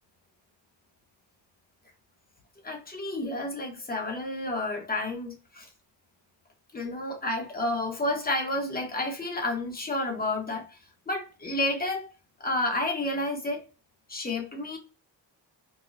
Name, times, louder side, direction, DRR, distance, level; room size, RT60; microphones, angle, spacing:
voice 1, 2.6-5.7 6.7-10.8 11.1-12.1 12.4-13.7 14.1-14.8, left 2 dB, 20° left, 1.0 m, -30 dB
4.9 x 2.2 x 2.6 m
wide cardioid pair, 170°, 44 cm